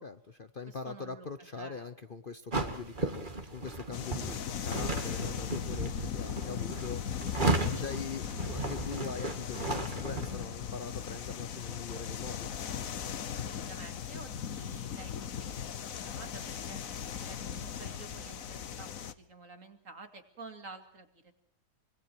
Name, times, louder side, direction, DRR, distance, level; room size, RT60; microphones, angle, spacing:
voice 1, 0.0-7.0 7.7-12.5, left 4 dB, 40° left, 10 dB, 1.0 m, -42 dB
voice 2, 0.7-1.3 1.5-1.9 7.7-7.8 13.3-16.8 17.2-18.9 19.2-21.4, right 3 dB, 55° right, 6 dB, 2.8 m, -50 dB
sound 1, 2.5-10.4, right 2 dB, 30° right, 2.2 m, -35 dB
sound 2, 3.9-19.1, left 8 dB, 60° left, 1.4 m, -38 dB
26.0 x 24.0 x 4.6 m, 0.69 s
omnidirectional pair, 1.7 m